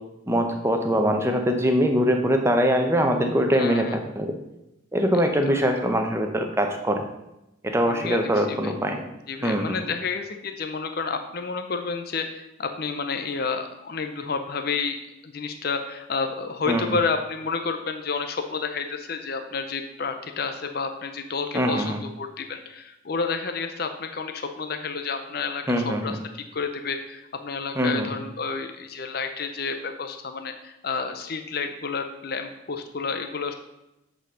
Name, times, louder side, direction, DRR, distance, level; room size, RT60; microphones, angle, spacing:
voice 1, 0.3-3.9 4.2-4.3 4.9-7.0 7.6-9.0 9.4-9.8 16.7-16.9 21.5-22.0 25.7-26.2 27.8-28.1, equal, 15° right, 4 dB, 0.8 m, -23 dB
voice 2, 3.5-4.0 5.5-5.7 7.8-8.7 9.3-33.5, left 4 dB, 50° left, 6 dB, 0.6 m, -30 dB
8.0 x 4.2 x 6.2 m, 0.91 s
head